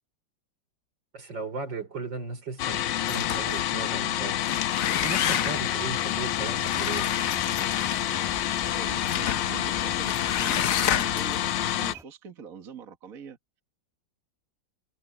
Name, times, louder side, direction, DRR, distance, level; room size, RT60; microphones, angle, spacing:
voice 1, 1.1-4.6 5.0-7.2, right 4 dB, 75° right, 4.7 m, -37 dB
sound 1, 2.6-11.9, left 12 dB, 80° left, 1.4 m, -28 dB
sound 2, 3.1-3.7 4.3-5.8 6.6-8.3 9.0-9.5 10.0-11.4, left 9 dB, 55° left, 1.1 m, -30 dB
sound 3, 5.4-12.0, equal, ahead, 1.0 m, -46 dB
voice 2, 8.7-10.1 10.4-13.4, right 7 dB, 50° right, 1.9 m, -43 dB
omnidirectional pair, 2.0 m